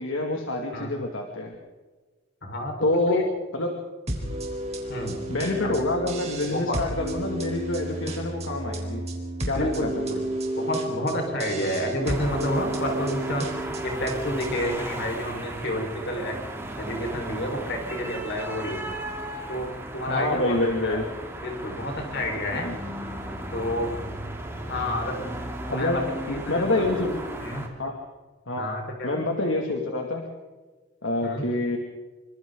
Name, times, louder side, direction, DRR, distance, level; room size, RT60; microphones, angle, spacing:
voice 1, 0.0-1.5 2.8-3.2 3.5-3.8 5.3-9.0 9.5-10.2 20.1-21.1 22.6-22.8 25.7-26.0 26.3-27.1 27.8-28.0 28.5-28.7 29.0-30.3 31.0-31.8, left 2 dB, 70° left, 1 dB, 2.6 m, -27 dB
voice 2, 2.4-3.3 4.9-5.2 5.6-5.8 6.5-6.8 9.5-10.2 10.6-16.4 16.8-19.0 19.5-20.5 20.8-21.0 21.4-22.7 23.5-23.9 24.7-26.0 26.3-26.9 27.4-27.7 28.6-29.2 31.2-31.5, left 1 dB, 55° left, 2 dB, 5.1 m, -30 dB
sound 1, 4.1-14.7, right 1 dB, 30° right, 4.1 m, -32 dB
sound 2, 12.0-27.7, right 1 dB, 10° right, 3.3 m, -36 dB
27.0 x 25.5 x 4.0 m, 1.3 s
head